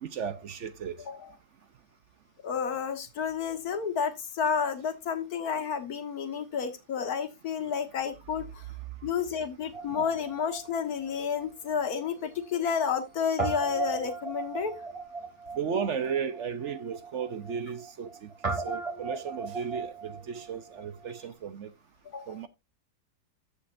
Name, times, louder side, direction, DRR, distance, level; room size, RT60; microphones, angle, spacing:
voice 1, 0.0-1.0 9.9-10.0 15.6-21.7 22.3-22.5, right 7 dB, 60° right, 0.9 m, -35 dB
voice 2, 2.4-8.7 9.0-14.7 22.1-22.4, left 6 dB, 65° left, 1.8 m, -31 dB
Guitar, 9.7-12.1 12.4-12.5 13.4-21.2, right 4 dB, 20° right, 2.9 m, -37 dB
14.0 x 6.5 x 2.6 m
omnidirectional pair, 1.8 m